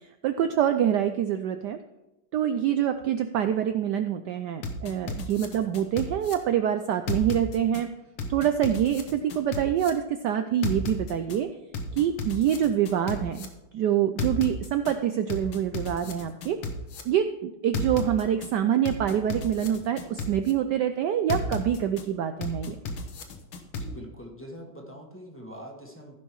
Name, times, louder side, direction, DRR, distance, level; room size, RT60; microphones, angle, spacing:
voice 1, 0.2-1.8 2.3-7.9 8.3-11.5 11.9-13.5 13.7-16.6 17.0-22.8, right 10 dB, 85° right, 8 dB, 0.9 m, -26 dB
sound 1, 4.6-6.3 7.1-7.8 8.2-9.9 10.6-11.4 11.7-13.5 14.2-14.9 15.3-17.0 17.7-18.5 18.9-20.5 21.3-22.0 22.4-23.9, left 3 dB, 75° left, 1.9 m, -33 dB
voice 2, 23.8-26.1, equal, 10° left, 0 dB, 1.0 m, -43 dB
15.5 x 5.5 x 4.6 m, 0.99 s
omnidirectional pair, 2.4 m